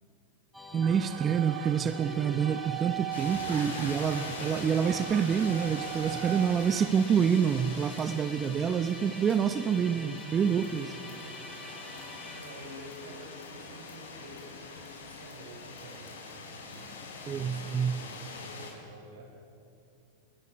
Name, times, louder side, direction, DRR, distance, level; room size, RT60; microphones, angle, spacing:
Musical instrument, 0.5-15.7, left 1 dB, ahead, 4.3 m, -47 dB
voice 1, 0.7-10.9 17.3-18.0, right 7 dB, 30° right, 11 dB, 0.9 m, -27 dB
sound 1, 0.8-6.9, right 19 dB, 60° right, 0.5 m, -39 dB
sound 2, 3.1-18.7, left 4 dB, 80° left, 4.8 m, -44 dB
voice 2, 6.0-6.6 10.1-11.4 12.3-16.9 17.2-19.3, right 1 dB, 75° right, 2 dB, 6.6 m, -49 dB
22.0 x 21.0 x 8.6 m, 2.7 s
hypercardioid pair, 100°, 0 cm